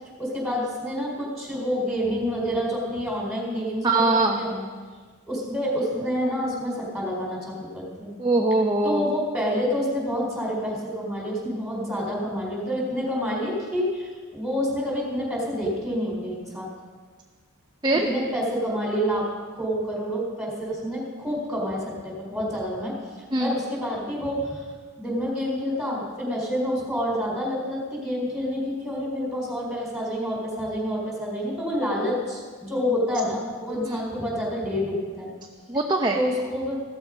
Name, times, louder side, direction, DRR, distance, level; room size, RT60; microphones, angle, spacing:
voice 1, 0.2-4.6 5.3-8.1 8.8-16.7 17.9-19.3 19.6-22.9 23.4-24.6 25.0-35.3 36.1-36.8, equal, ahead, -3 dB, 4.5 m, -28 dB
voice 2, 3.8-4.4 8.2-9.1 17.8-18.1 23.3-23.5 33.8-34.0 35.7-36.2, right 2 dB, 20° right, 1 dB, 0.8 m, -22 dB
16.0 x 13.5 x 5.3 m, 1.5 s
head